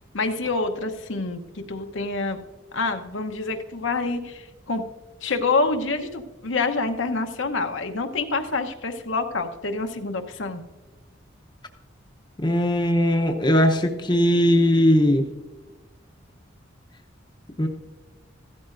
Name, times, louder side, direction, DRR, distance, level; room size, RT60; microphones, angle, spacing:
voice 1, 0.1-2.4 2.7-4.8 5.2-10.6, left 3 dB, 75° left, 5 dB, 0.9 m, -27 dB
voice 2, 12.4-15.3 17.6-17.7, equal, 25° left, 3 dB, 0.8 m, -19 dB
15.0 x 13.0 x 2.6 m, 1.2 s
head